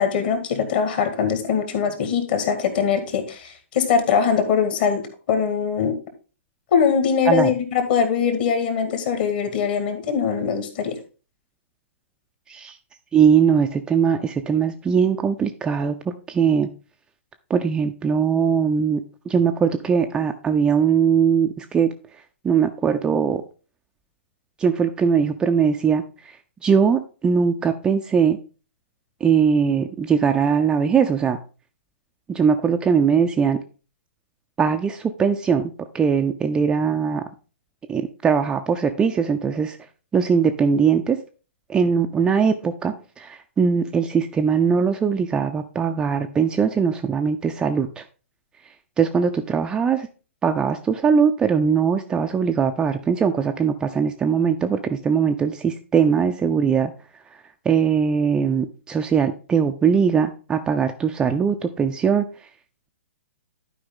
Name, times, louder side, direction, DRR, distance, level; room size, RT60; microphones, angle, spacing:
voice 1, 0.0-6.0 6.7-10.9, left 6 dB, 45° left, 7 dB, 1.8 m, -22 dB
voice 2, 13.1-16.7 17.5-21.9 22.4-23.4 24.6-26.0 26.6-28.4 29.2-31.4 32.3-33.6 34.6-37.2 37.9-39.8 40.1-41.2 41.7-48.0 49.0-50.1 50.4-56.9 57.7-62.3, right 6 dB, 10° right, 5 dB, 0.4 m, -20 dB
11.5 x 5.0 x 3.7 m, 0.35 s
figure-of-eight pair, 115°, 7 cm